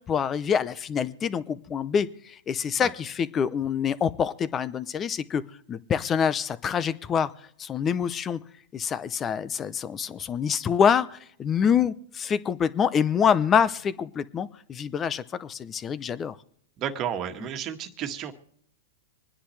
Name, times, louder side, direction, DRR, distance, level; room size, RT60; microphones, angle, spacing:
voice 1, 0.1-5.4 5.7-7.3 7.6-8.4 8.7-16.4, left 7 dB, 25° left, 16 dB, 0.7 m, -26 dB
voice 2, 16.8-18.3, right 9 dB, 35° right, 6 dB, 1.6 m, -32 dB
26.0 x 10.0 x 3.3 m, 0.67 s
hypercardioid pair, 130°, 0 cm